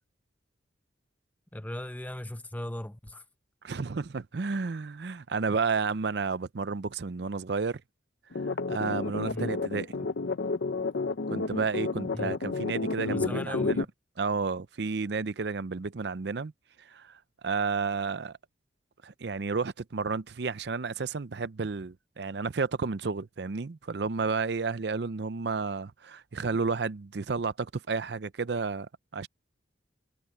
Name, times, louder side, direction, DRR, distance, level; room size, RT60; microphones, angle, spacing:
voice 1, 1.5-3.2 9.3-9.5 12.1-12.3 13.1-13.9, left 1 dB, 10° left, 0.7 m, -38 dB
voice 2, 3.6-7.8 8.7-9.9 11.3-13.9 14.2-16.5 16.8-18.4 19.0-29.3, right 4 dB, 60° right, 0.5 m, -31 dB
sound 1, 8.3-13.8, left 3 dB, 65° left, 0.7 m, -31 dB
head